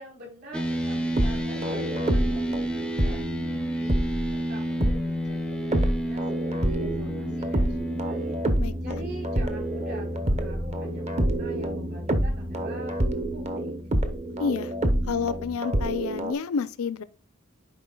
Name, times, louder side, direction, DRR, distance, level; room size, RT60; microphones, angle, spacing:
voice 1, 0.0-3.2 3.5-4.0 4.5-8.4 8.8-13.7, right 1 dB, 50° right, 3.8 m, -45 dB
sound 1, 0.5-15.6, equal, 5° left, 0.4 m, -32 dB
sound 2, 1.0-4.3 4.8-5.0 5.7-16.3, right 1 dB, 30° right, 0.7 m, -28 dB
voice 2, 8.6-9.0 14.4-14.7 15.1-17.0, left 5 dB, 75° left, 0.5 m, -29 dB
10.5 x 4.6 x 2.3 m
head